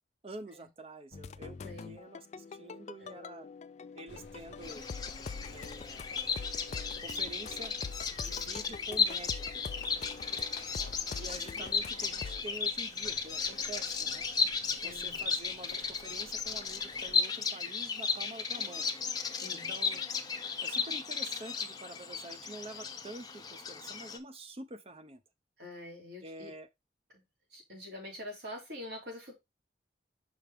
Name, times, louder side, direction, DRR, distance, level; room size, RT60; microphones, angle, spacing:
voice 1, 0.2-3.5 3.9-4.8 5.5-6.1 6.7-7.7 8.2-9.6 11.1-14.3 14.8-18.9 19.5-20.0 20.6-25.2 26.2-26.7, right 2 dB, 35° right, 0.7 m, -47 dB
sound 1, 1.1-12.4, left 5 dB, 40° left, 0.3 m, -45 dB
voice 2, 1.6-1.9 3.0-3.2 14.8-15.2 19.3-19.7 25.6-26.5 27.1-27.2 27.5-29.4, left 1 dB, 65° right, 3.0 m, -45 dB
sound 2, 4.1-17.2, left 2 dB, 75° left, 0.9 m, -53 dB
Bird vocalization bird call bird song, 4.6-24.2, left 5 dB, 20° left, 0.7 m, -35 dB
5.8 x 5.2 x 3.6 m
head